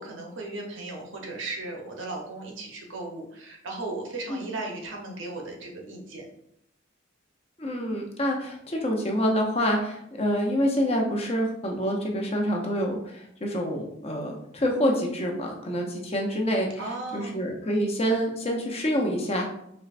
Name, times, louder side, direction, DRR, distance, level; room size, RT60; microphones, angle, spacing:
voice 1, 0.0-6.3 16.8-17.4, right 2 dB, 75° right, 0 dB, 0.9 m, -36 dB
voice 2, 7.6-16.7 17.1-19.5, equal, 30° left, 1 dB, 0.6 m, -27 dB
4.5 x 3.1 x 2.5 m, 0.76 s
head